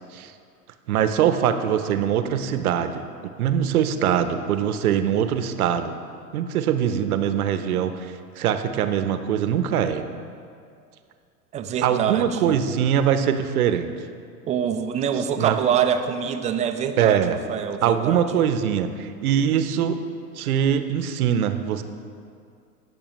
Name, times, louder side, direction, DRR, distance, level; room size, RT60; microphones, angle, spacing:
voice 1, 0.9-3.1 3.4-6.0 6.3-10.0 11.8-13.9 15.4-15.6 17.0-17.4 17.8-20.0 20.4-21.8, right 9 dB, 65° right, 9 dB, 0.9 m, -22 dB
voice 2, 11.5-12.6 14.5-18.4, right 8 dB, 15° right, 7 dB, 0.4 m, -25 dB
18.5 x 6.9 x 3.1 m, 2.3 s
hypercardioid pair, 95°, 46 cm